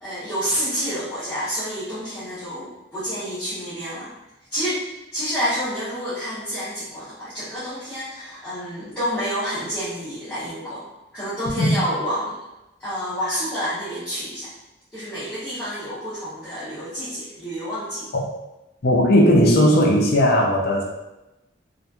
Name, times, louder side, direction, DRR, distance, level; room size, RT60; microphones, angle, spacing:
voice 1, 0.0-4.1 4.5-4.8 5.1-10.8 11.1-12.4 12.8-14.5 14.9-18.1, equal, 5° left, -15 dB, 0.9 m, -28 dB
voice 2, 18.8-20.8, equal, 50° left, -1 dB, 0.5 m, -16 dB
2.9 x 2.5 x 2.3 m, 0.97 s
head